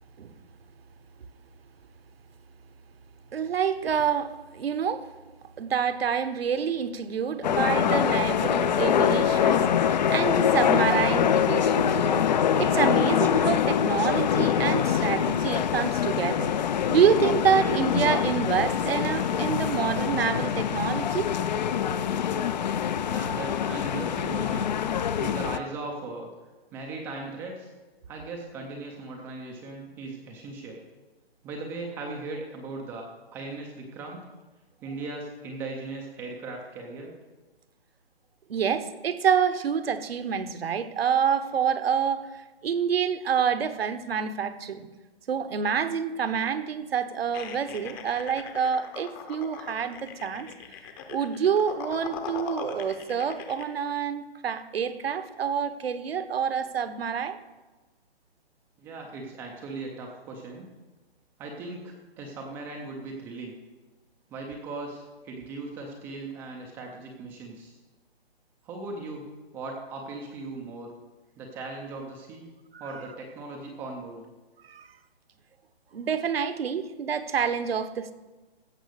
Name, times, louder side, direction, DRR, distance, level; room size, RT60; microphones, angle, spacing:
voice 1, 3.3-5.1 5.6-16.5 16.9-21.3 38.5-42.3 42.6-44.9 45.3-50.5 51.1-57.4 72.7-72.9 74.7-74.9 75.9-78.1, right 7 dB, 70° right, 12 dB, 1.2 m, -27 dB
sound 1, 7.4-25.6, left 8 dB, 45° left, 0.6 m, -24 dB
voice 2, 22.8-24.7 24.9-26.3 26.7-27.7 28.1-30.8 31.4-34.2 34.8-37.1 58.8-60.7 61.4-63.5 64.3-67.8 68.6-69.3 69.5-70.9 71.4-72.5 72.8-74.3, right 3 dB, 5° right, 1 dB, 0.5 m, -38 dB
sound 2, 47.3-53.6, left 6 dB, 20° left, 0.9 m, -41 dB
15.5 x 6.2 x 6.5 m, 1.2 s
hypercardioid pair, 155°, 31 cm